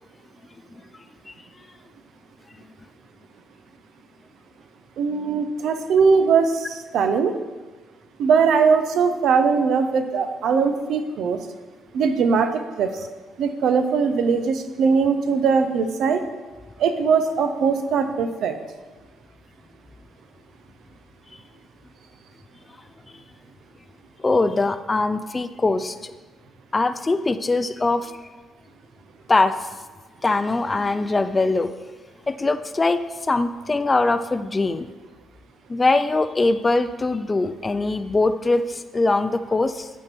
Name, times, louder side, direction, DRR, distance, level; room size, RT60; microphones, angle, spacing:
voice 1, 5.0-7.4 8.2-11.4 11.9-13.0 13.4-16.2 16.8-18.6, right 5 dB, 75° right, 8 dB, 0.7 m, -20 dB
voice 2, 24.2-26.1 26.7-28.2 29.3-29.7 30.2-31.7 32.3-34.9 35.7-39.9, left 3 dB, 25° left, 11 dB, 0.4 m, -22 dB
11.0 x 4.5 x 4.5 m, 1.3 s
cardioid pair, 90°, 0 cm